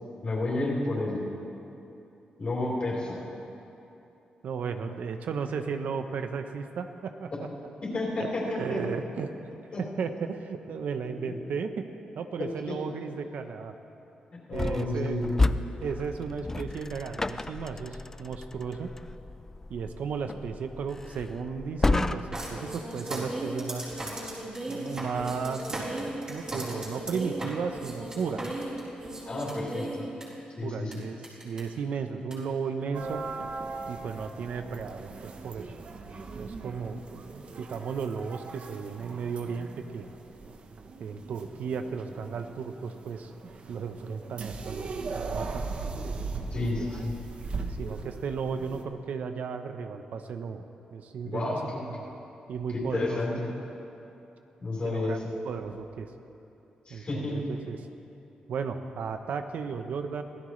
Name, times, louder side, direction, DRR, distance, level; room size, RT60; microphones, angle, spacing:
voice 1, 0.2-1.2 2.4-3.2 7.8-8.8 9.7-9.8 11.3-11.4 12.4-12.8 14.3-15.4 29.3-30.0 30.6-31.0 46.5-47.1 51.2-51.8 52.9-53.5 54.6-55.2 56.9-57.4, left 2 dB, 40° left, -4 dB, 4.2 m, -31 dB
voice 2, 4.4-7.3 8.5-9.3 9.8-11.8 12.2-13.7 14.5-15.1 15.8-18.9 19.7-23.9 24.7-28.5 30.6-33.2 33.9-35.7 36.3-40.1 41.0-43.3 43.7-45.7 46.6-46.9 47.8-50.6 50.9-51.6 51.9-52.1 52.5-53.2 54.8-55.2 55.4-56.1 56.9-57.8 58.5-60.2, right 5 dB, 75° right, 7 dB, 0.9 m, -34 dB
sound 1, 14.5-22.6, left 2 dB, 15° left, 0.4 m, -32 dB
sound 2, 22.3-30.2 30.9-31.0 31.2-31.6 32.3-32.4, right 1 dB, 30° right, 4.1 m, -36 dB
sound 3, 32.9-48.8, right 4 dB, 50° right, 1.0 m, -39 dB
25.0 x 16.0 x 3.3 m, 2.9 s
wide cardioid pair, 130°, 3 cm